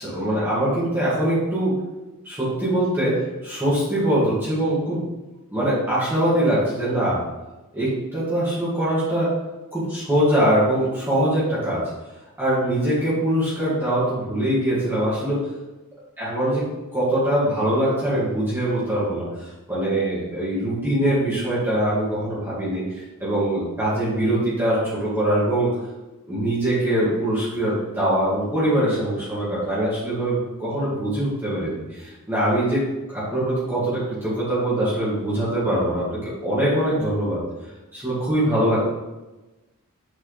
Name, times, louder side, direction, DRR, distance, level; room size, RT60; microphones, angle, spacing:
voice 1, 0.0-1.8 2.2-5.0 5.5-7.2 7.7-9.3 9.7-11.8 12.4-15.4 16.2-25.7 26.3-36.1 36.4-37.4 37.9-38.9, right 1 dB, 10° right, -10 dB, 2.1 m, -23 dB
6.6 x 4.2 x 4.0 m, 1.1 s
head